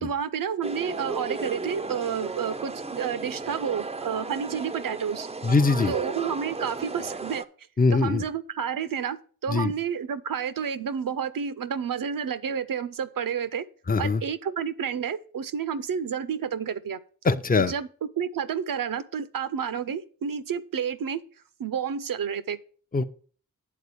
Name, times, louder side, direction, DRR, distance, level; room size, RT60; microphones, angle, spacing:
voice 1, 0.0-5.3 5.9-7.5 7.9-13.6 14.0-17.0 17.7-17.9 18.2-21.2 21.6-22.6, right 7 dB, 70° right, 14 dB, 0.6 m, -30 dB
sound 1, 0.6-7.5, right 3 dB, 20° right, 0.5 m, -35 dB
voice 2, 5.4-6.0 7.8-8.2 9.5-9.7 13.9-14.2 17.2-17.7 22.9-23.0, left 4 dB, 25° left, 10 dB, 0.6 m, -22 dB
8.5 x 3.9 x 6.7 m, 0.43 s
cardioid pair, 45°, 35 cm